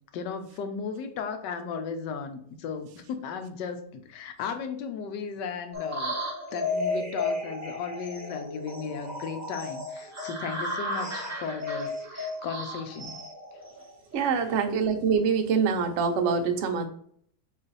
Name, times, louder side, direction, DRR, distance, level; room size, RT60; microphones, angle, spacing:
voice 1, 0.1-6.1 6.5-13.2 13.5-13.6 14.2-14.3, left 6 dB, 85° left, 7 dB, 1.3 m, -35 dB
sound 1, 5.7-14.1, left 1 dB, 10° right, 1.0 m, -34 dB
voice 2, 14.1-16.9, right 6 dB, 60° right, 5 dB, 0.8 m, -25 dB
4.1 x 3.1 x 3.9 m, 0.62 s
omnidirectional pair, 1.8 m